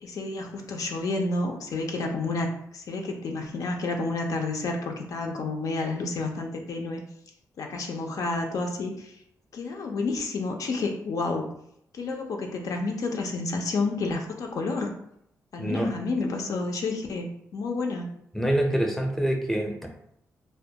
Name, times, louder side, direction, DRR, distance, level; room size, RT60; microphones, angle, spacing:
voice 1, 0.0-7.0 7.6-9.1 9.5-11.5 11.9-14.9 15.5-18.1, left 3 dB, 65° left, 2 dB, 0.4 m, -30 dB
voice 2, 15.6-15.9 18.3-19.9, right 1 dB, 5° left, 2 dB, 0.5 m, -25 dB
2.2 x 2.1 x 2.7 m, 0.73 s
cardioid pair, 75°, 6 cm